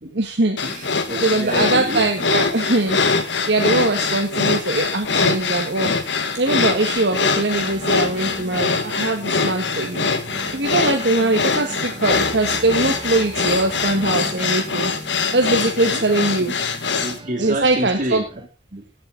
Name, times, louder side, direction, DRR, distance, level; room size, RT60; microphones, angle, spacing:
voice 1, 0.1-0.6 1.2-3.0 3.5-5.9 6.3-10.1 10.5-14.9 15.3-16.6 17.4-18.3, right 2 dB, 65° right, 3 dB, 1.7 m, -21 dB
sound 1, 0.6-17.2, left 4 dB, 80° left, 1.8 m, -23 dB
voice 2, 0.6-2.1 15.9-16.1 16.4-16.6 17.0-18.9, right 1 dB, 45° right, 3 dB, 3.0 m, -29 dB
sound 2, 7.5-18.5, right 1 dB, 30° right, 1.4 m, -38 dB
17.0 x 7.8 x 3.9 m, 0.30 s
head